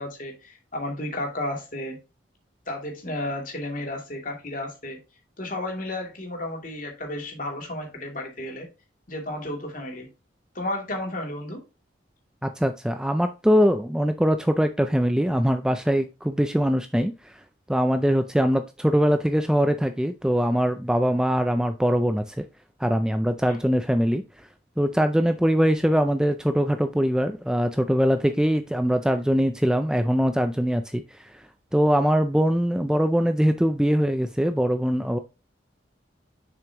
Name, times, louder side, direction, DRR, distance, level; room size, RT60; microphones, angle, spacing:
voice 1, 0.0-2.0 2.7-5.0 5.4-8.7 9.1-10.1 10.5-11.6 23.5-23.6, left 1 dB, 45° left, 2.6 m, -32 dB
voice 2, 12.4-17.4 17.7-22.4 22.8-24.2 24.8-31.4 31.7-35.2, equal, 5° right, 0.3 m, -22 dB
7.1 x 5.9 x 2.9 m
head